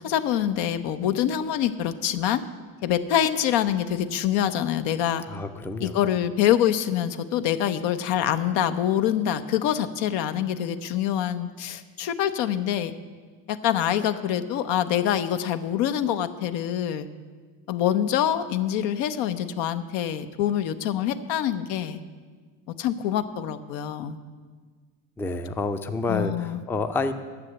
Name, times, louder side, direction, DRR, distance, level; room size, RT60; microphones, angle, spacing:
voice 1, 0.0-2.4 2.8-5.2 5.8-12.9 13.5-17.1 17.7-22.0 22.8-24.2 26.1-26.6, left 10 dB, 75° left, 11 dB, 0.8 m, -25 dB
voice 2, 5.3-6.0 25.2-27.1, left 3 dB, 5° left, 9 dB, 0.4 m, -28 dB
9.7 x 7.1 x 8.6 m, 1.5 s
cardioid pair, 110°, 45 cm